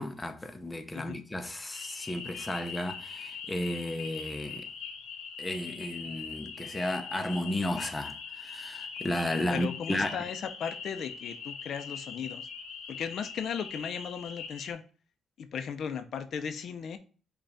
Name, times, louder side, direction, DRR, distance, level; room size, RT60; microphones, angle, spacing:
voice 1, 0.0-4.7 5.4-10.2, left 1 dB, 15° left, 0.6 m, -33 dB
sound 1, 1.7-14.7, left 6 dB, 85° left, 0.9 m, -42 dB
voice 2, 9.4-12.5 12.9-14.8 15.4-17.0, left 7 dB, 65° left, 0.6 m, -36 dB
5.5 x 2.4 x 3.9 m
cardioid pair, 90°, 0 cm